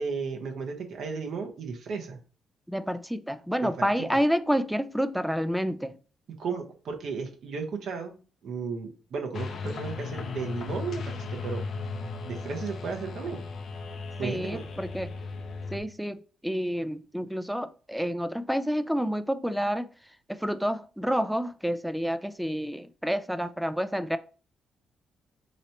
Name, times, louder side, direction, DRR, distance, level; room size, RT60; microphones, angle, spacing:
voice 1, 0.0-2.2 3.6-3.9 6.4-11.6 12.2-13.4 14.2-14.6, right 5 dB, 65° right, 0.9 m, -34 dB
voice 2, 2.7-5.9 14.2-15.1 15.7-19.9 20.3-24.2, equal, ahead, 0.3 m, -29 dB
sound 1, 9.3-15.8, left 4 dB, 60° left, 0.5 m, -36 dB
3.0 x 2.8 x 4.2 m
cardioid pair, 90°, 0 cm